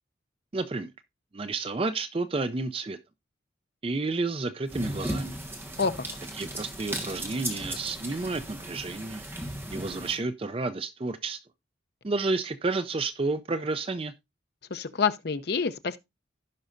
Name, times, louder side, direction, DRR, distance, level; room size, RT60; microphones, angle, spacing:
voice 1, 0.5-0.9 1.3-3.0 3.8-5.4 6.3-9.2 9.7-11.4 12.0-14.1, right 3 dB, 30° right, 0.4 m, -31 dB
sound 1, 4.7-10.2, right 1 dB, 10° right, 1.3 m, -36 dB
voice 2, 14.7-16.0, left 5 dB, 55° left, 0.6 m, -27 dB
16.0 x 5.4 x 2.5 m
head